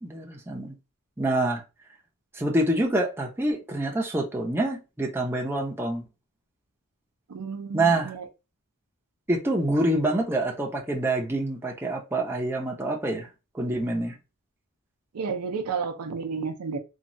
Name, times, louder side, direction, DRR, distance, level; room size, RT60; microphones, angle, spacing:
voice 1, 0.0-0.8 1.2-1.6 2.3-6.0 7.7-8.2 9.3-13.3 13.5-14.1, right 1 dB, 10° right, 0.6 m, -26 dB
voice 2, 7.3-8.2 15.1-16.8, right 5 dB, 85° right, 0.5 m, -31 dB
3.0 x 2.3 x 2.6 m
head